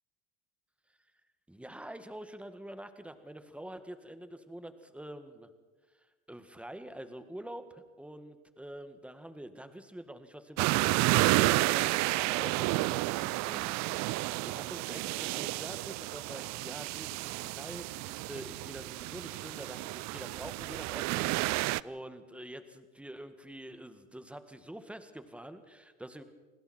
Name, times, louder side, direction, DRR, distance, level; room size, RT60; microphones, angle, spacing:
voice 1, 1.5-5.5 6.0-26.2, right 1 dB, 5° right, 9 dB, 1.9 m, -46 dB
sound 1, 10.6-21.8, right 21 dB, 45° right, 0.5 m, -31 dB
29.5 x 20.5 x 4.5 m, 1.3 s
hypercardioid pair, 90°, 39 cm